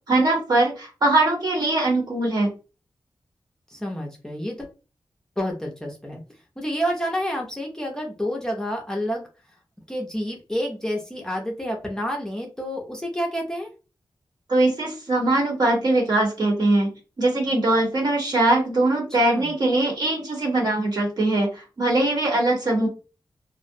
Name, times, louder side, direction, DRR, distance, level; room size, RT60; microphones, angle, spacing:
voice 1, 0.1-2.5 14.5-16.9 17.2-21.5 21.8-22.9, right 2 dB, 55° right, -1 dB, 1.0 m, -21 dB
voice 2, 3.7-4.7 5.4-6.2 6.6-9.3 9.9-13.7 19.2-19.5, equal, 5° left, 0 dB, 0.5 m, -29 dB
2.4 x 2.0 x 2.6 m, 0.32 s
wide cardioid pair, 120°, 8 cm